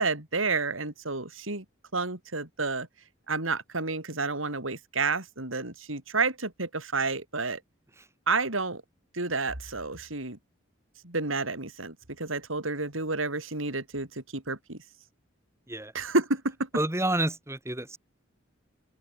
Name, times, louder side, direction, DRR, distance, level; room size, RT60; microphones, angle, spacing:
voice 1, 0.0-1.6 1.9-2.9 3.3-7.6 8.3-8.8 9.1-10.4 11.0-14.8 15.9-16.7, right 3 dB, 90° right, 4.8 m, -30 dB
voice 2, 16.7-18.0, right 1 dB, 15° right, 2.6 m, -29 dB
open air
head